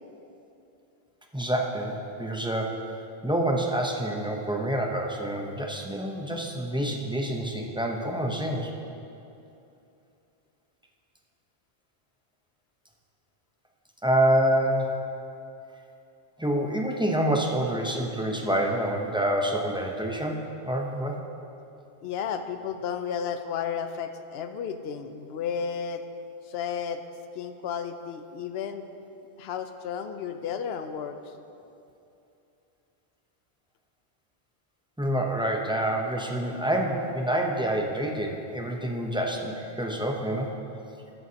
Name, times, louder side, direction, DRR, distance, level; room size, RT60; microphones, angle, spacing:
voice 1, 1.3-2.9 3.2-8.7 14.0-14.9 16.4-21.2 35.0-40.5, right 1 dB, 5° right, 1 dB, 0.6 m, -27 dB
voice 2, 22.0-26.0 26.4-27.0 27.3-28.9 29.4-31.3, left 7 dB, 75° left, 9 dB, 0.8 m, -33 dB
13.0 x 9.1 x 2.8 m, 2.8 s
omnidirectional pair, 1.0 m